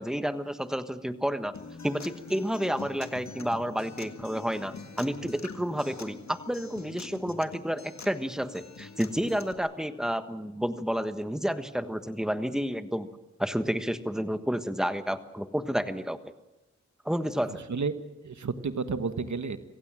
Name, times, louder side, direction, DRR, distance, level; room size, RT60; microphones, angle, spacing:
voice 1, 0.0-1.5 1.8-13.1 13.4-16.3 17.0-17.6, equal, ahead, 10 dB, 1.4 m, -30 dB
Acoustic guitar, 1.5-9.5, left 4 dB, 70° left, 1.8 m, -45 dB
voice 2, 17.5-17.9 18.2-19.6, right 5 dB, 75° right, 10 dB, 1.4 m, -31 dB
26.0 x 16.0 x 7.6 m, 1.0 s
cardioid pair, 55°, 29 cm